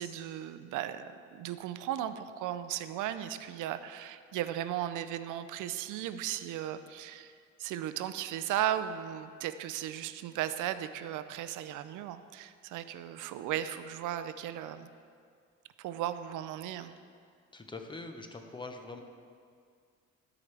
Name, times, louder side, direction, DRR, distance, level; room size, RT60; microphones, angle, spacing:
voice 1, 0.0-7.3 7.6-14.9 15.8-16.9, right 11 dB, 85° right, 12 dB, 0.5 m, -36 dB
voice 2, 17.5-19.0, left 3 dB, 15° left, 5 dB, 0.7 m, -43 dB
12.5 x 4.9 x 3.3 m, 2.2 s
cardioid pair, 90°, 30 cm